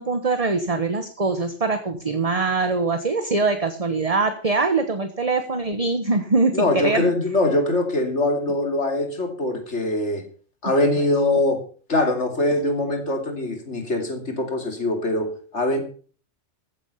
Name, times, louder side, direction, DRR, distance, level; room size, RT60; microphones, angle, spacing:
voice 1, 0.0-7.1, right 3 dB, 30° right, 8 dB, 1.3 m, -23 dB
voice 2, 6.5-10.2 10.6-11.6 11.9-15.8, left 2 dB, 70° left, 5 dB, 3.1 m, -23 dB
15.5 x 8.8 x 5.7 m, 0.41 s
omnidirectional pair, 1.2 m